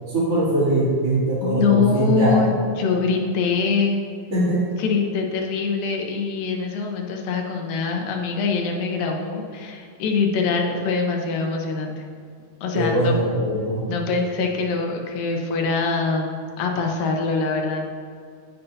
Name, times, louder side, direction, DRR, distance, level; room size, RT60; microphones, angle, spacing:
voice 1, 0.1-2.4 4.3-4.7 12.7-13.9, right 1 dB, 40° right, -12 dB, 3.1 m, -21 dB
voice 2, 1.4-4.0 4.8-11.9 12.6-13.2 13.9-17.8, left 5 dB, 75° left, 1 dB, 2.6 m, -23 dB
15.5 x 6.8 x 2.8 m, 2.2 s
omnidirectional pair, 4.2 m